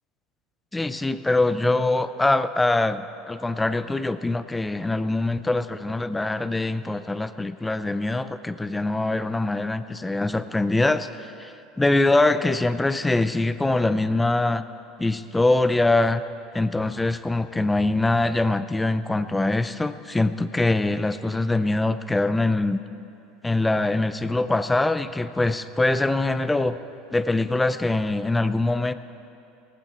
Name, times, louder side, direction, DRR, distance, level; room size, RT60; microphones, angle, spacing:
voice 1, 0.7-14.6 15.0-16.2 16.5-22.8 23.4-26.8 27.1-28.9, left 2 dB, 10° left, 12 dB, 0.6 m, -23 dB
18.5 x 14.5 x 4.4 m, 2.6 s
supercardioid pair, 105°, 0 cm